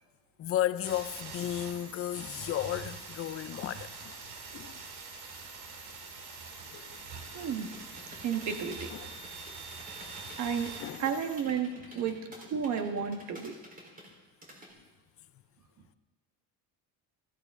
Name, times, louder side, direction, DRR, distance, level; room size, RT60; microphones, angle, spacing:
voice 1, 0.4-4.2 4.5-4.8 6.7-7.6 8.9-9.1 10.1-10.4 10.8-11.0, left 12 dB, 40° left, 0.5 m, -35 dB
sound 1, 0.8-11.4, right 4 dB, 75° right, 2.4 m, -44 dB
voice 2, 7.3-7.7 8.2-8.9 10.4-10.7 11.0-13.6, right 7 dB, 50° right, 1.5 m, -32 dB
sound 2, 7.5-14.7, equal, 20° right, 3.7 m, -50 dB
15.5 x 15.0 x 3.6 m
cardioid pair, 145°, 38 cm